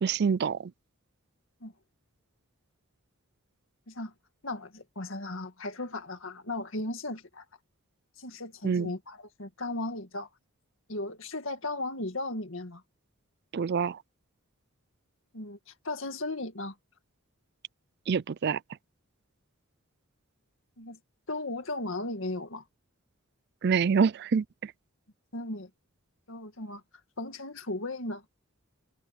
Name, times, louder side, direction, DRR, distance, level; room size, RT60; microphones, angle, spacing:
voice 1, 0.0-0.6 8.6-8.9 13.5-14.0 18.1-18.6 23.6-24.4, right 6 dB, 50° right, 0.4 m, -26 dB
voice 2, 4.4-7.4 8.2-10.3 10.9-12.8 15.3-16.8 20.8-21.0 21.3-22.6 25.3-25.7 26.3-26.8 27.2-28.2, left 2 dB, 65° left, 2.1 m, -36 dB
head